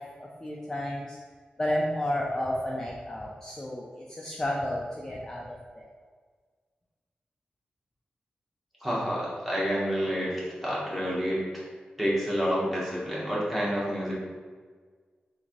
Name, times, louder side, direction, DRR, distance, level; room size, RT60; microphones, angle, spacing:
voice 1, 0.2-1.2 1.6-5.9, left 1 dB, 15° left, -3 dB, 0.3 m, -32 dB
voice 2, 8.8-11.6 12.0-14.1, equal, 5° right, -7 dB, 0.9 m, -29 dB
3.0 x 2.6 x 3.7 m, 1.5 s
wide cardioid pair, 170°, 3 cm